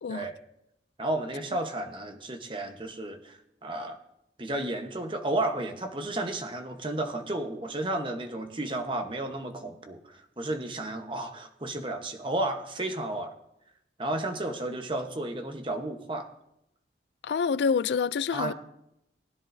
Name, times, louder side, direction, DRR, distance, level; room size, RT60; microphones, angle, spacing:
voice 1, 1.0-4.0 4.4-13.3 14.0-16.3 18.3-18.5, right 2 dB, 30° right, 1.0 m, -32 dB
voice 2, 17.2-18.5, left 6 dB, 80° left, 0.3 m, -27 dB
20.0 x 10.5 x 2.7 m
head